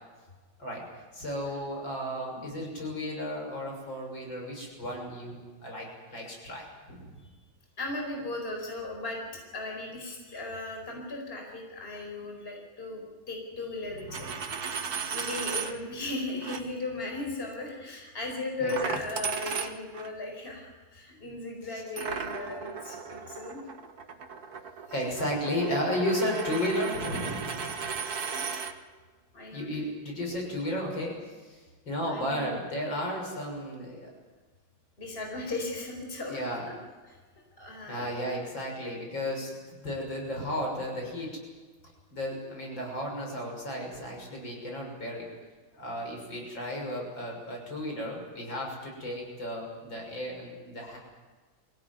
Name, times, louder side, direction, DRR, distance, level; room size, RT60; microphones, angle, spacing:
voice 1, 1.1-7.1 14.2-14.3 18.6-18.7 21.7-21.8 22.1-22.2 24.9-27.9 29.5-31.1 31.5-31.6 31.9-34.1 36.3-36.7 37.9-41.3 42.1-45.3 45.7-51.0, equal, 65° left, 0 dB, 7.4 m, -34 dB
voice 2, 7.8-9.2 9.5-23.6 28.3-28.5 29.3-29.7 32.1-32.6 35.0-36.8 37.0-37.2 37.6-38.1, left 2 dB, 25° left, 1 dB, 4.9 m, -37 dB
Coin (dropping), 14.0-15.7 16.4-16.6 18.7-20.1 22.0-28.7, right 6 dB, 50° right, 2.0 m, -36 dB
24.5 x 17.0 x 9.5 m, 1.3 s
omnidirectional pair, 2.2 m